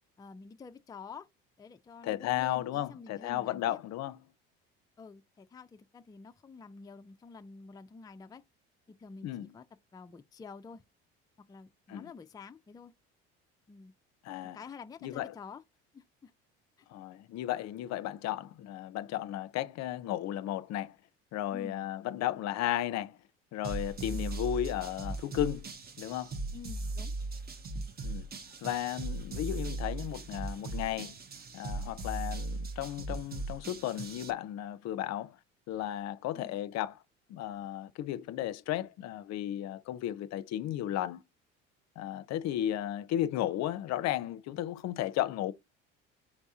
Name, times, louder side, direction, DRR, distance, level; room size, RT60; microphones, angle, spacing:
voice 1, 0.2-1.3 1.6-3.8 5.0-8.4 8.9-9.6 9.9-10.8 11.5-12.9 13.7-13.9 14.4-15.6 15.9-16.3 21.5-21.9 26.5-27.1 36.4-36.6, left 5 dB, 15° left, 0.4 m, -49 dB
voice 2, 2.0-4.2 9.2-9.5 11.9-12.1 14.2-14.6 15.0-15.3 16.9-21.0 21.3-23.2 23.5-25.7 26.0-26.3 28.0-28.3 28.6-31.2 31.5-35.4 35.7-36.9 37.3-41.2 42.0-45.5, left 12 dB, 60° left, 0.6 m, -34 dB
sound 1, 23.6-34.3, right 2 dB, 30° right, 0.7 m, -38 dB
4.8 x 3.5 x 2.7 m
supercardioid pair, 80°, 30 cm